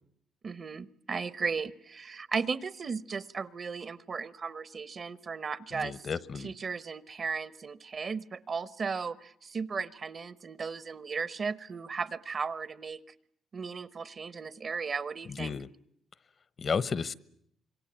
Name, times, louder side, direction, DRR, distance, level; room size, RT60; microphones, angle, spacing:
voice 1, 0.4-6.0 6.4-13.0 13.5-15.5, right 5 dB, 45° right, 16 dB, 1.0 m, -36 dB
voice 2, 5.7-6.5 15.2-15.7 16.6-17.1, left 5 dB, 45° left, 18 dB, 1.0 m, -33 dB
26.0 x 23.5 x 8.8 m, 0.71 s
cardioid pair, 90°, 0 cm